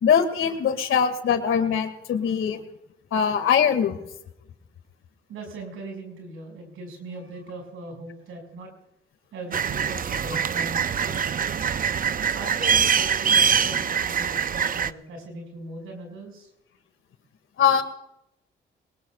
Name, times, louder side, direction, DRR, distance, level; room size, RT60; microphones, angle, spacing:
voice 1, 0.0-2.6 3.1-4.0 17.6-17.8, left 7 dB, 70° left, 9 dB, 2.0 m, -22 dB
voice 2, 5.3-8.7 9.3-11.7 12.3-16.5, right 2 dB, 80° right, 3 dB, 5.8 m, -39 dB
sound 1, 9.5-14.9, right 7 dB, 40° right, 0.6 m, -24 dB
22.0 x 20.5 x 2.4 m, 0.81 s
cardioid pair, 65°, 21 cm